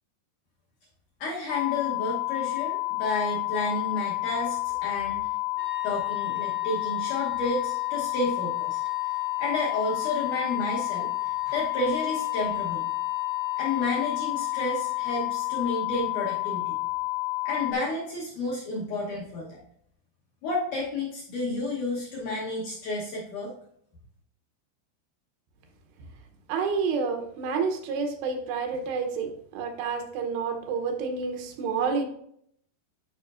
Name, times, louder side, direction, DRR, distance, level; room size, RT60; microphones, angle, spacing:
voice 1, 1.2-5.3 5.8-9.1 9.4-12.8 13.6-16.8 17.5-19.6 20.4-23.5, left 2 dB, 70° left, -5 dB, 1.9 m, -31 dB
sound 1, 1.5-17.7, left 22 dB, 90° left, 3.2 m, -30 dB
sound 2, 5.5-15.5, left 1 dB, 50° right, 1.0 m, -47 dB
voice 2, 26.5-32.1, right 5 dB, 80° right, 5 dB, 2.9 m, -29 dB
11.5 x 5.1 x 2.4 m, 0.69 s
omnidirectional pair, 4.9 m